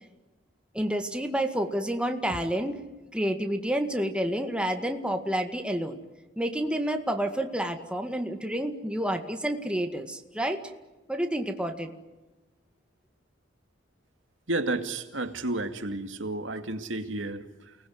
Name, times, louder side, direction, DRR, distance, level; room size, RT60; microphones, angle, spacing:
voice 1, 0.7-2.8 3.1-6.0 6.4-10.6 11.1-11.9, right 1 dB, 5° right, 5 dB, 2.0 m, -29 dB
voice 2, 14.5-17.8, right 2 dB, 80° right, 7 dB, 2.5 m, -32 dB
29.5 x 20.5 x 9.5 m, 1.1 s
head